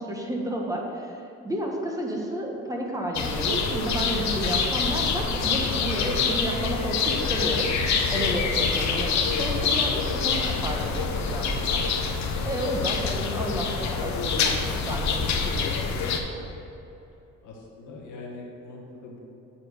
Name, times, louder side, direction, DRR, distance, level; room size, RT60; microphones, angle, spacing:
voice 1, 0.0-6.0 6.3-7.7 8.1-11.8 12.4-16.1, right 1 dB, 10° right, -1 dB, 1.3 m, -32 dB
sound 1, 3.1-16.2, left 5 dB, 65° left, 0.9 m, -26 dB
sound 2, 3.5-7.6, right 9 dB, 85° right, 0.8 m, -41 dB
voice 2, 17.4-19.3, left 2 dB, 85° left, -2 dB, 1.6 m, -39 dB
7.5 x 4.4 x 6.5 m, 2.9 s
cardioid pair, 90°, 30 cm